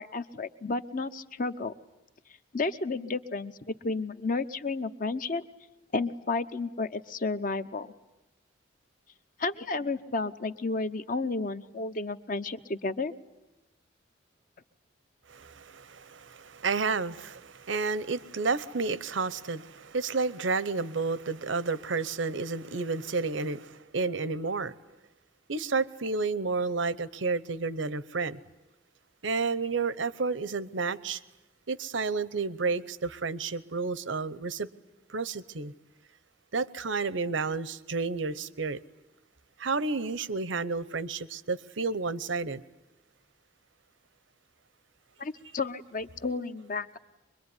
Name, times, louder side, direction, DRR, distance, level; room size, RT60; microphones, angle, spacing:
voice 1, 0.0-1.7 2.5-5.4 5.9-7.9 9.4-13.1 45.2-47.0, left 3 dB, 45° left, 0.9 m, -32 dB
voice 2, 15.3-24.7 25.5-28.4 29.2-31.2 31.7-34.7 35.1-35.7 36.5-38.8 39.6-42.6, right 4 dB, 80° right, 0.9 m, -31 dB
24.5 x 22.5 x 9.7 m
head